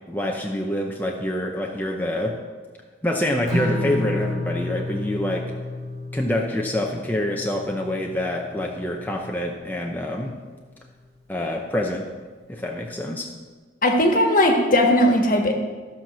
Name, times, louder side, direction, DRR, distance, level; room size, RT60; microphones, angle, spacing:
voice 1, 0.1-2.4 3.0-5.5 6.1-10.3 11.3-12.1 12.5-13.3, left 1 dB, 10° left, 0 dB, 0.7 m, -26 dB
Strum, 3.5-9.7, left 1 dB, 20° right, 2.7 m, -31 dB
voice 2, 13.8-15.5, left 1 dB, 50° left, 3 dB, 1.5 m, -18 dB
15.0 x 5.9 x 6.1 m, 1.5 s
head